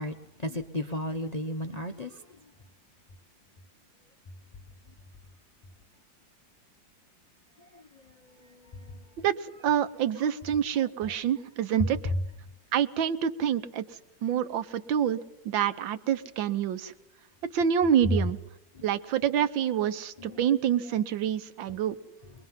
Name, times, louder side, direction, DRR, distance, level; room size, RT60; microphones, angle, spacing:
voice 1, 0.0-2.3 7.7-7.8 8.4-9.0 18.8-18.9 20.2-20.4, equal, 55° left, 7 dB, 0.4 m, -35 dB
voice 2, 9.2-12.1 12.7-13.8 14.2-15.2 15.4-16.9 17.4-18.4 18.8-21.9, right 9 dB, 75° right, 11 dB, 1.7 m, -27 dB
23.5 x 21.0 x 5.7 m, 0.86 s
omnidirectional pair, 2.1 m